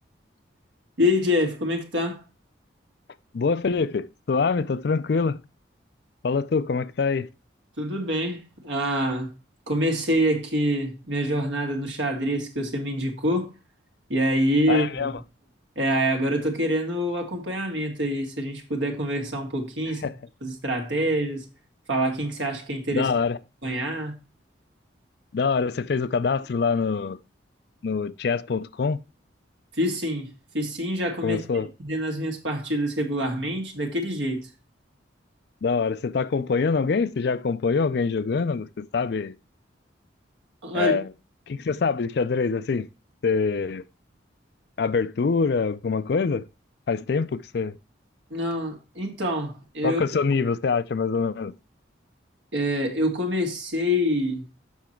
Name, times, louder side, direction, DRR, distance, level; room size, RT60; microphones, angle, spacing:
voice 1, 1.0-2.2 7.8-9.3 9.7-13.5 14.1-15.1 15.8-20.0 20.4-21.5 21.9-23.1 23.6-24.1 29.7-34.5 40.6-40.9 48.3-50.0 52.5-54.5, equal, 70° right, 1.9 m, -26 dB
voice 2, 3.3-5.4 6.2-7.3 14.7-15.1 20.0-20.1 22.9-23.4 25.3-27.2 27.8-29.0 31.2-31.7 35.6-39.3 40.7-41.1 41.5-42.9 43.2-43.8 44.8-46.5 46.9-47.7 49.8-51.5, left 5 dB, 55° left, 0.4 m, -25 dB
7.3 x 5.9 x 4.4 m
head